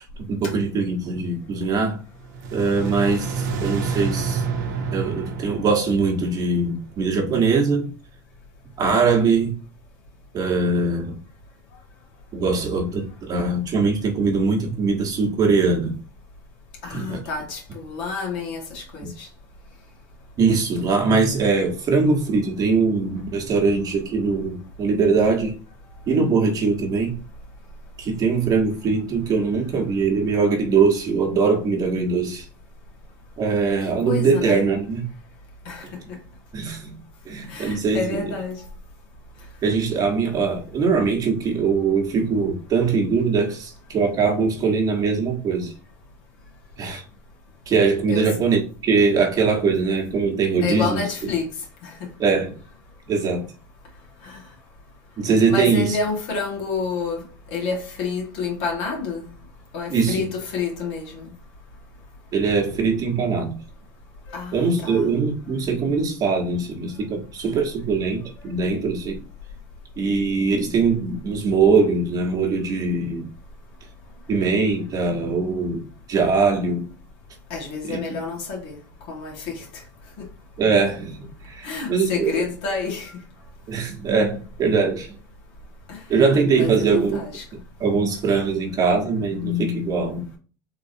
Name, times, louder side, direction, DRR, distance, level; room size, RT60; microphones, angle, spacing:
voice 1, 0.3-2.0 2.5-4.4 4.9-7.9 8.8-9.5 10.3-11.2 12.3-16.0 16.9-17.2 20.4-25.6 26.1-27.2 28.0-32.4 33.4-35.1 36.5-37.0 37.2-38.3 39.6-45.7 46.8-47.0 47.7-51.3 52.2-52.6 53.1-53.5 55.2-56.0 59.9-60.3 62.3-63.6 64.5-69.2 70.0-73.3 74.3-76.9 77.8-78.0 80.6-82.3 83.7-85.2 86.1-87.2 87.8-90.3, right 4 dB, 40° right, 1.3 m, -22 dB
sound 1, 2.2-7.3, right 5 dB, 75° right, 0.8 m, -29 dB
voice 2, 2.8-3.2 16.8-19.3 34.1-34.6 35.7-35.8 37.5-38.6 48.1-48.3 50.6-51.5 51.8-51.9 54.2-54.4 55.5-57.2 57.5-59.3 59.7-61.3 64.3-65.1 77.5-78.8 79.1-79.6 81.6-83.1 85.9-86.0 86.5-87.4, left 4 dB, 65° left, 1.7 m, -29 dB
3.8 x 3.0 x 2.7 m
hypercardioid pair, 90°, 10 cm